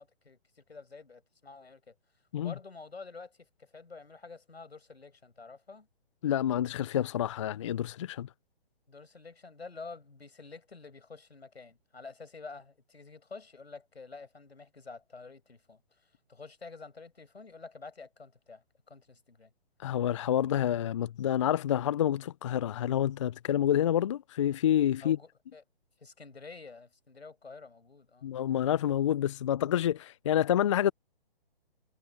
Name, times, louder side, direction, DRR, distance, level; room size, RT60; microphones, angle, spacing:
voice 1, 0.0-1.9 2.4-5.9 8.9-15.8 16.3-19.5 25.0-25.6 26.0-28.3, left 4 dB, 85° left, 6.8 m, -49 dB
voice 2, 6.2-8.3 19.8-25.2 28.2-30.9, left 10 dB, 30° left, 0.5 m, -28 dB
figure-of-eight pair, 140°, 31 cm